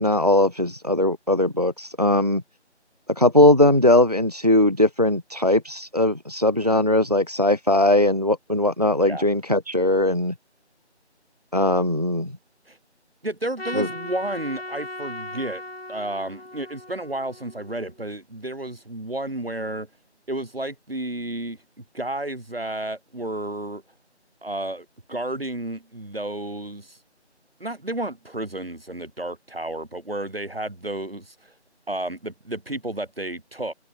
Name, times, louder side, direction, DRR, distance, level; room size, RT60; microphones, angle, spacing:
voice 1, 0.0-2.4 3.2-10.3 11.5-12.3 13.7-13.9, left 1 dB, 35° right, 0.8 m, -19 dB
voice 2, 13.2-15.6 15.9-19.9 20.3-23.8 24.4-27.0 27.6-31.5 31.9-33.7, right 1 dB, 55° right, 6.2 m, -32 dB
Trumpet, 13.6-18.0, left 1 dB, 60° left, 5.8 m, -37 dB
figure-of-eight pair, 180°, 35 cm